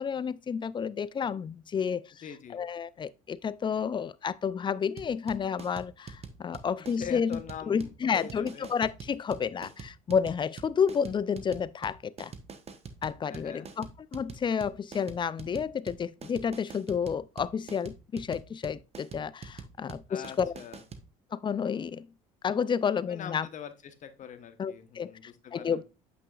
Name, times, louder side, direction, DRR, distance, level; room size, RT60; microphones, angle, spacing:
voice 1, 0.0-2.2 2.5-7.4 7.7-12.3 13.0-20.5 21.3-22.1 22.4-23.5 24.6-25.8, left 7 dB, 30° left, 0.4 m, -31 dB
voice 2, 2.2-2.6 6.8-8.7 13.3-13.7 20.1-20.8 23.1-25.8, left 8 dB, 45° left, 1.1 m, -43 dB
sound 1, 5.0-21.1, right 5 dB, 35° right, 1.0 m, -44 dB
8.1 x 5.9 x 2.4 m
supercardioid pair, 75°, 17 cm